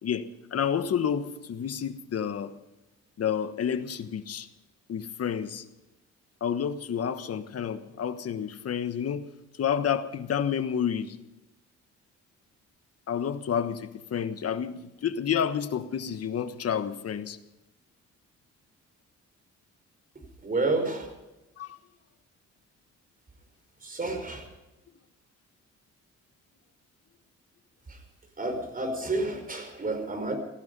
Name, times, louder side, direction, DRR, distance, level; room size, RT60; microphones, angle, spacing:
voice 1, 0.0-2.5 3.2-4.5 4.9-5.6 6.4-9.3 9.6-11.2 13.1-17.4 21.6-21.8, left 8 dB, 55° left, 11 dB, 1.3 m, -30 dB
voice 2, 20.4-21.1 23.8-24.5 27.9-28.0 28.4-30.4, right 2 dB, 30° right, 6 dB, 5.0 m, -30 dB
18.0 x 14.5 x 5.4 m, 1.0 s
cardioid pair, 90°, 30 cm